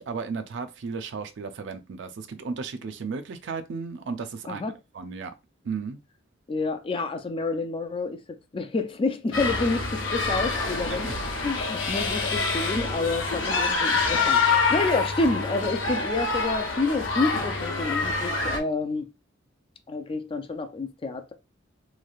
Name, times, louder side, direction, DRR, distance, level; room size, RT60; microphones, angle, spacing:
voice 1, 0.0-4.6 4.9-5.3 5.6-6.0 10.9-11.1, right 5 dB, 65° right, 0.4 m, -34 dB
voice 2, 6.5-11.1 11.4-19.1 19.9-21.3, left 3 dB, 30° left, 0.4 m, -29 dB
sound 1, 9.3-18.6, left 4 dB, 75° left, 0.8 m, -26 dB
3.1 x 2.5 x 2.3 m
head